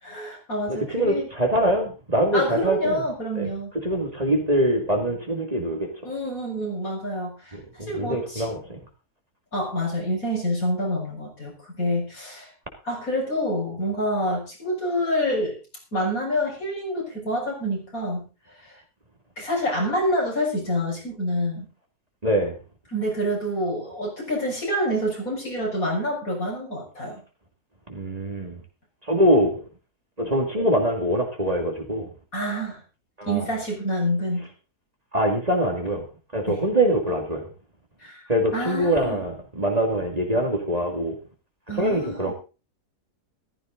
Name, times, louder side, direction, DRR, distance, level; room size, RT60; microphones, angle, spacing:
voice 1, 0.0-1.3 2.3-3.8 6.0-8.5 9.5-12.5 12.8-15.6 15.9-18.2 18.6-18.7 19.4-21.7 22.9-27.2 32.3-32.8 33.3-34.4 36.5-36.6 38.0-38.2 38.5-39.2 41.7-42.3, equal, 60° left, -1 dB, 6.7 m, -27 dB
voice 2, 0.7-3.0 3.4-3.5 3.8-5.9 7.5-8.8 22.2-22.5 27.9-28.6 29.1-29.5 30.2-32.1 33.2-33.4 35.1-36.0 36.3-37.5 38.3-41.2 41.7-42.3, right 1 dB, 25° right, 2 dB, 2.5 m, -23 dB
15.0 x 14.0 x 3.9 m, 0.32 s
omnidirectional pair, 1.7 m